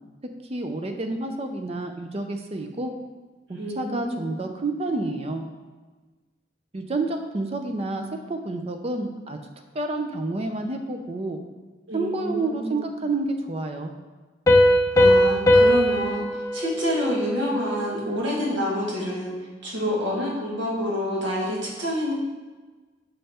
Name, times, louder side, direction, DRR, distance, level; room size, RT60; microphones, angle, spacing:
voice 1, 0.5-2.9 3.5-5.5 6.7-9.4 9.7-11.4 11.9-13.9, right 2 dB, 35° right, 5 dB, 0.5 m, -29 dB
voice 2, 3.6-4.3 11.9-12.8 14.9-16.2 16.5-19.3 19.6-22.1, left 1 dB, 80° right, -4 dB, 1.7 m, -27 dB
Piano, 14.5-17.9, left 1 dB, 15° left, 0.5 m, -19 dB
5.5 x 5.5 x 4.2 m, 1.3 s
head